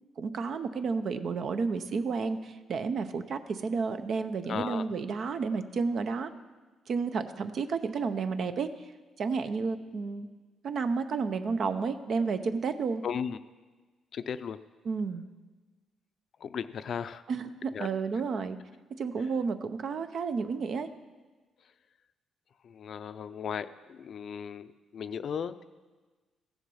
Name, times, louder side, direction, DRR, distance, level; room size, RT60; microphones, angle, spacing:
voice 1, 0.2-6.3 6.9-8.9 9.2-10.3 10.6-13.0 14.8-15.2 17.3-18.6 19.0-20.9, right 5 dB, 60° right, 10 dB, 0.7 m, -31 dB
voice 2, 4.5-4.8 13.0-13.4 14.1-14.6 16.4-17.2 17.7-17.9 22.6-25.7, left 7 dB, 60° left, 13 dB, 0.4 m, -36 dB
15.0 x 7.2 x 5.5 m, 1.3 s
cardioid pair, 90°, 0 cm